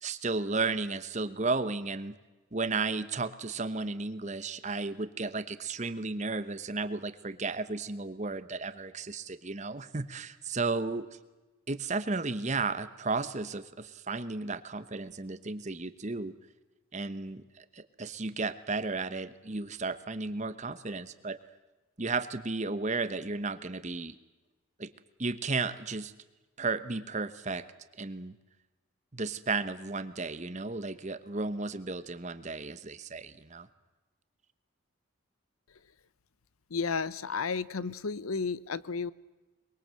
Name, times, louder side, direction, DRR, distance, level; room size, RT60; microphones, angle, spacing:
voice 1, 0.0-2.1 2.5-11.1 11.7-16.3 16.9-21.4 22.0-24.1 24.8-24.9 25.2-26.1 26.6-27.7 28.0-28.3 29.1-33.7, right 3 dB, 35° right, 13 dB, 1.0 m, -34 dB
voice 2, 36.7-39.1, left 5 dB, 85° left, 18 dB, 0.8 m, -32 dB
23.0 x 22.5 x 7.7 m, 1.2 s
head